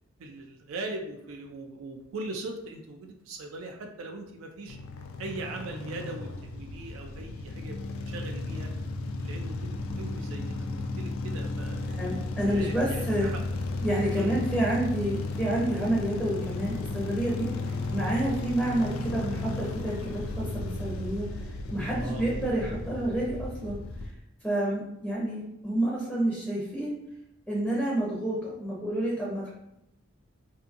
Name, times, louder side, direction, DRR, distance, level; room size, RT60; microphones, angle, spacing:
voice 1, 0.2-4.8 5.2-7.8 8.0-8.7 9.2-11.8 12.4-13.4 14.1-14.4 21.8-22.3, right 2 dB, 70° right, 2 dB, 0.4 m, -40 dB
sound 1, 4.7-24.1, left 2 dB, 80° left, 0.3 m, -34 dB
voice 2, 11.9-13.3 13.8-23.8 24.4-27.0 27.5-29.5, right 1 dB, ahead, -6 dB, 0.5 m, -29 dB
2.6 x 2.6 x 2.5 m, 0.83 s
head